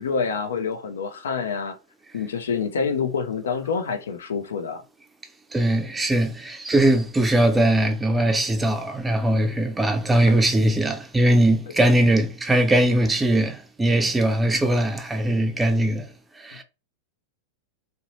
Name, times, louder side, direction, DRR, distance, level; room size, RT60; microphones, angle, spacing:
voice 1, 0.0-1.8 2.1-4.8, left 5 dB, 85° left, 0.5 m, -27 dB
voice 2, 5.5-16.1 16.4-16.6, right 1 dB, 10° right, 0.4 m, -20 dB
2.7 x 2.1 x 2.9 m
hypercardioid pair, 110°, 0 cm